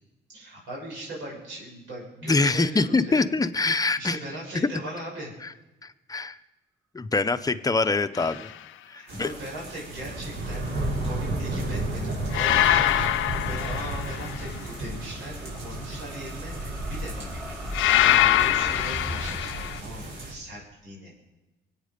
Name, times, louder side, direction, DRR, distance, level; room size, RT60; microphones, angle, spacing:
voice 1, 0.3-3.2 4.0-5.3 8.9-17.4 18.0-21.1, right 1 dB, 85° right, -3 dB, 6.2 m, -39 dB
voice 2, 2.2-4.2 4.5-4.7 5.8-6.4 6.9-8.5 8.9-9.3, left 3 dB, 20° left, 10 dB, 0.8 m, -24 dB
sound 1, 8.2-8.5 12.3-14.5 17.7-19.8, left 13 dB, 85° left, 0.7 m, -23 dB
sound 2, 9.1-20.3, right 1 dB, 65° right, 5.6 m, -33 dB
sound 3, 12.1-19.4, right 1 dB, 10° right, 2.3 m, -41 dB
23.0 x 8.9 x 5.2 m, 1.1 s
cardioid pair, 90°, 20 cm